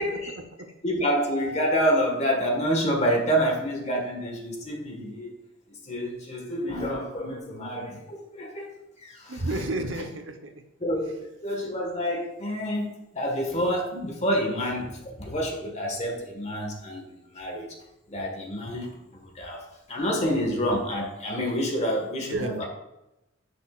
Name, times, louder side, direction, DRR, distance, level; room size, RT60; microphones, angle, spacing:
voice 1, 0.0-0.4 0.8-5.3 5.8-8.7 9.0-9.3 10.8-17.7 18.1-22.7, equal, 35° left, 1 dB, 1.6 m, -28 dB
voice 2, 9.3-10.6 22.2-22.6, right 2 dB, 70° right, 5 dB, 0.9 m, -32 dB
10.0 x 6.5 x 2.5 m, 0.92 s
head